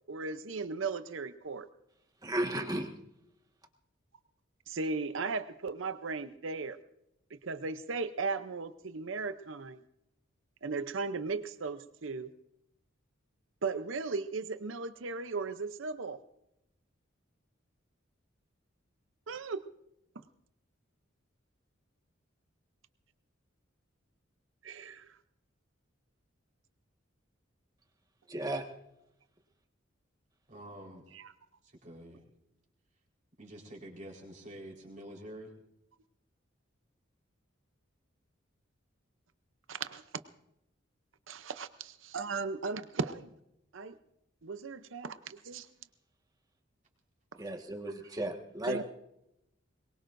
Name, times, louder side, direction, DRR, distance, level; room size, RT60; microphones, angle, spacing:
voice 1, 0.1-1.7 4.7-6.8 7.3-9.8 10.6-12.3 13.6-16.2 19.3-19.6 24.6-25.1 31.1-31.3 39.7-40.0 41.3-43.3 43.7-44.0 44.4-45.7 47.3-47.4 48.7-48.8, right 4 dB, 75° right, 11 dB, 0.7 m, -36 dB
voice 2, 2.2-2.9 28.3-28.6 47.4-48.8, right 1 dB, 20° right, 4 dB, 1.6 m, -34 dB
voice 3, 30.5-31.0 31.8-32.2 33.4-35.5, right 1 dB, 40° right, -1 dB, 4.3 m, -47 dB
23.5 x 22.0 x 2.6 m, 0.82 s
head